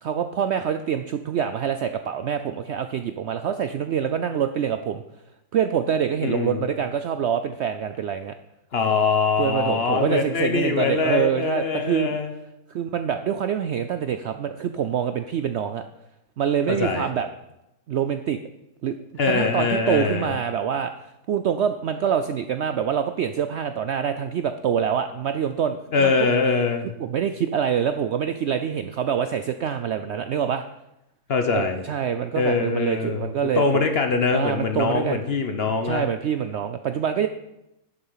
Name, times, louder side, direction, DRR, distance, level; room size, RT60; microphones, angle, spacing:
voice 1, 0.0-5.0 5.5-8.4 9.4-12.2 12.7-15.8 16.4-17.3 17.9-18.4 18.8-19.0 19.3-20.9 21.3-26.3 27.0-30.6 31.5-33.9 34.3-35.2 35.8-37.3, right 8 dB, 70° right, 9 dB, 0.6 m, -25 dB
voice 2, 6.2-6.6 8.7-12.3 16.7-17.1 19.2-20.3 25.9-26.9 31.3-31.8 32.3-33.3 33.6-36.0, left 4 dB, 50° left, 6 dB, 1.0 m, -23 dB
11.0 x 6.7 x 5.6 m, 0.89 s
omnidirectional pair, 1.6 m